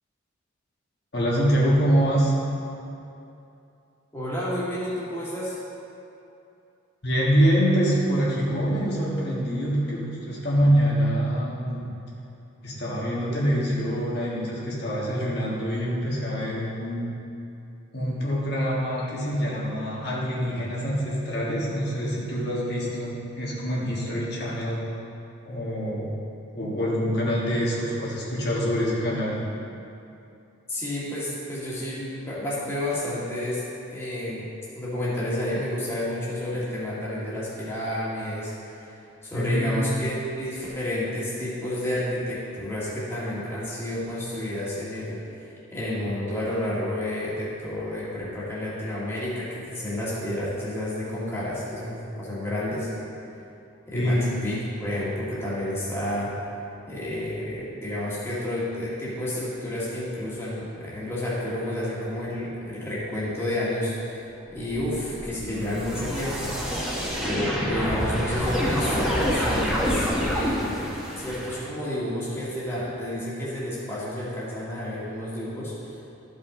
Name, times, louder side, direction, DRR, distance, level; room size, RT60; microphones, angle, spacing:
voice 1, 1.1-2.3 7.0-11.9 12.6-17.1 17.9-24.8 25.4-26.2 26.5-29.4 39.3-39.9 53.9-54.3, equal, 50° left, -6 dB, 1.5 m, -25 dB
voice 2, 4.1-5.6 30.7-33.6 33.9-34.5 34.7-38.9 39.2-52.9 53.9-56.3 56.9-64.2 64.5-66.8 67.1-76.0, left 1 dB, 10° left, -9 dB, 1.7 m, -30 dB
sound 1, 64.5-71.6, equal, 5° right, 1.3 m, -27 dB
13.5 x 5.5 x 3.8 m, 2.7 s
head